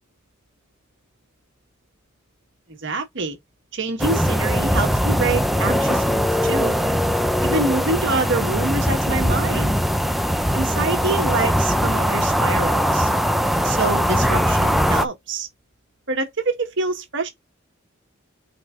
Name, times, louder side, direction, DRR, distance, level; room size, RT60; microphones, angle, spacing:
voice 1, 2.8-3.4 3.7-6.8 7.4-9.7 10.5-13.1 13.6-15.5 16.1-17.3, right 3 dB, 65° right, 1.6 m, -26 dB
sound 1, 4.0-15.0, equal, ahead, 0.7 m, -20 dB
5.9 x 4.9 x 3.7 m
head